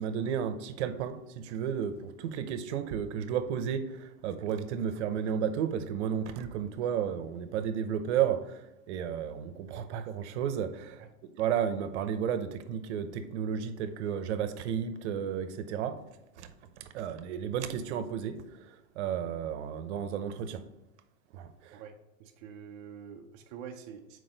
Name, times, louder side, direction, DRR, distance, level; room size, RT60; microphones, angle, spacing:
voice 1, 0.0-16.0 16.4-16.5 16.8-20.6 21.3-21.8, right 8 dB, 55° right, 0.8 m, -33 dB
voice 2, 21.7-24.2, right 7 dB, 30° right, 0.4 m, -46 dB
6.0 x 4.7 x 4.0 m
supercardioid pair, 145°, 40 cm